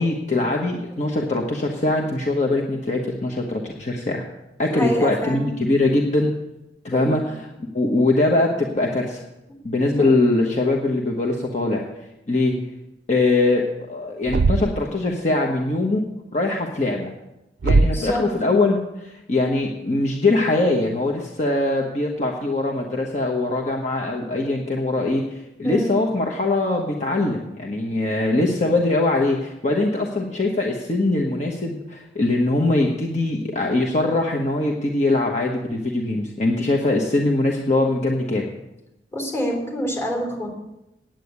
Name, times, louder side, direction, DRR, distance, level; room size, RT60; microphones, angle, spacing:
voice 1, 0.0-4.2 4.6-6.3 6.8-7.4 7.7-9.2 9.6-11.9 12.3-12.5 13.1-16.0 16.3-17.1 17.6-38.5, left 2 dB, 40° left, 0 dB, 1.2 m, -22 dB
voice 2, 4.7-5.4 6.9-7.1 17.9-18.2 25.6-26.0 39.1-40.5, equal, 15° left, -1 dB, 3.7 m, -26 dB
Thump thud, 14.3-14.9 17.6-18.2, right 3 dB, 70° right, 0.4 m, -19 dB
9.2 x 9.2 x 8.3 m, 0.92 s
head